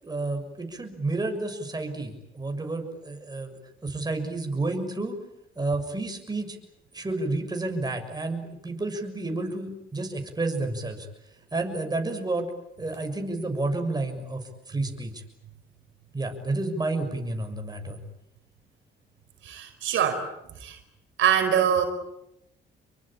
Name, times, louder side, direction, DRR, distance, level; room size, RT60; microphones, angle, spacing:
voice 1, 0.0-3.5 3.8-5.2 5.5-6.6 6.9-11.1 11.5-12.5 12.8-15.2 16.1-18.0, right 2 dB, 20° right, 4 dB, 6.8 m, -30 dB
voice 2, 19.4-20.3 20.6-20.8 21.2-21.8, right 9 dB, 75° right, 6 dB, 4.9 m, -23 dB
28.0 x 23.5 x 8.8 m, 0.82 s
cardioid pair, 90°, 20 cm